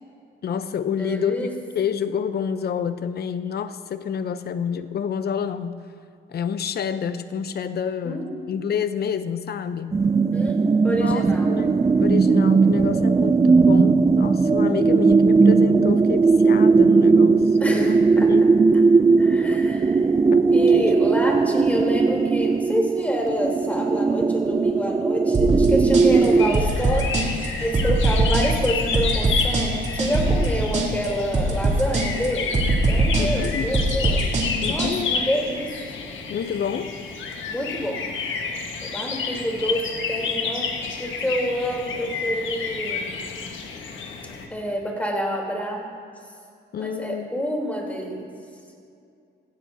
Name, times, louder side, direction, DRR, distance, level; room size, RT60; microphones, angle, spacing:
voice 1, 0.4-1.5 1.7-5.7 6.3-10.1 10.9-18.0 18.3-18.5 20.3-20.4 20.7-20.9 33.2-33.7 34.6-35.2 36.3-36.9 46.7-47.3, left 7 dB, 55° left, 12 dB, 0.7 m, -28 dB
voice 2, 0.9-1.5 8.0-8.6 10.3-10.6 10.8-11.5 17.6-18.3 19.2-20.1 20.5-27.3 27.6-32.6 32.9-35.7 37.5-38.0 38.9-43.2 44.5-45.8 46.8-48.3, equal, 5° left, -1 dB, 3.5 m, -28 dB
sound 1, 9.9-26.6, right 4 dB, 20° right, 0.3 m, -18 dB
sound 2, 25.3-34.9, right 2 dB, 35° right, 2.9 m, -22 dB
sound 3, 26.1-44.5, left 5 dB, 75° left, 1.4 m, -30 dB
16.5 x 16.0 x 2.8 m, 2.4 s
cardioid pair, 90°, 20 cm